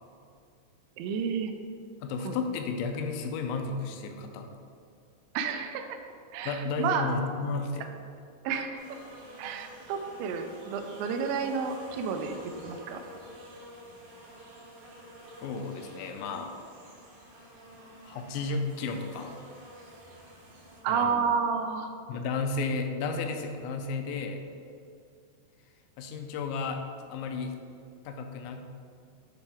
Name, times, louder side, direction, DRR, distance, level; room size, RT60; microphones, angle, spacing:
voice 1, 1.0-1.5 2.2-2.4 5.3-6.0 6.3-7.2 8.4-8.9 9.4-12.4 12.6-13.0 20.8-21.9, right 6 dB, 85° right, 6 dB, 2.9 m, -30 dB
voice 2, 2.0-4.5 6.5-7.9 15.4-16.5 18.0-19.3 20.9-21.3 22.1-24.4 26.0-27.5 28.1-28.6, left 4 dB, 85° left, 5 dB, 2.9 m, -33 dB
sound 1, 8.7-20.8, equal, 55° right, 2.4 m, -49 dB
9.7 x 4.0 x 3.4 m, 2.5 s
omnidirectional pair, 5.2 m